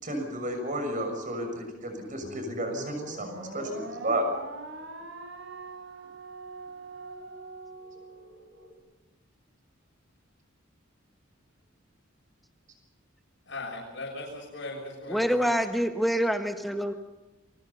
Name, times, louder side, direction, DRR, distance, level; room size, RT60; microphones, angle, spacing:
voice 1, 0.0-4.3, right 1 dB, 40° right, 5 dB, 6.5 m, -32 dB
sound 1, 2.2-8.7, right 2 dB, 70° right, 5.0 m, -42 dB
voice 2, 13.5-15.6, left 2 dB, 65° left, -3 dB, 6.8 m, -38 dB
voice 3, 15.1-16.9, equal, ahead, 5 dB, 1.5 m, -26 dB
28.0 x 23.5 x 5.6 m, 1.0 s
head